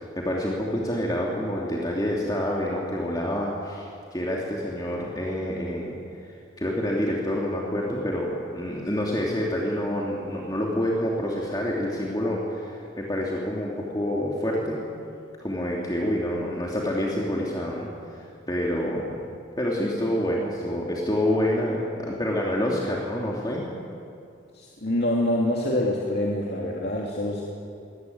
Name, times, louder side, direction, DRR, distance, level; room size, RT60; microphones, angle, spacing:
voice 1, 0.0-5.9 6.2-14.8 15.4-19.2 19.6-23.6, left 1 dB, 20° left, -3 dB, 2.8 m, -27 dB
voice 2, 24.5-27.4, left 1 dB, 55° left, -2 dB, 2.8 m, -26 dB
23.0 x 18.5 x 9.5 m, 2.4 s
head